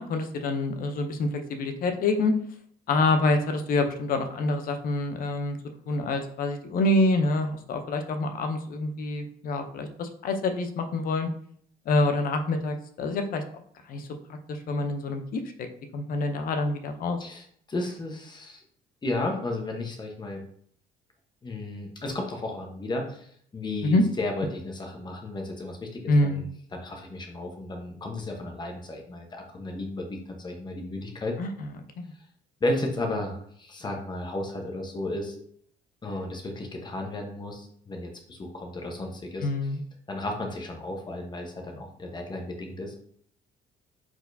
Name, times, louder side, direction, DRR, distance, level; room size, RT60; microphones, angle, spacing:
voice 1, 0.0-2.3 2.9-5.6 5.9-11.3 11.9-13.4 13.9-14.1 14.5-15.4 15.9-17.2 23.8-24.0 26.1-26.4 31.4-31.7 32.0-32.1 39.4-39.8, left 2 dB, 55° left, 7 dB, 0.7 m, -26 dB
voice 2, 17.2-18.6 19.0-20.4 21.4-31.4 32.6-35.3 36.0-39.5 40.1-43.0, left 2 dB, 25° left, 2 dB, 1.1 m, -33 dB
4.4 x 4.3 x 2.7 m, 0.63 s
cardioid pair, 110°, 17 cm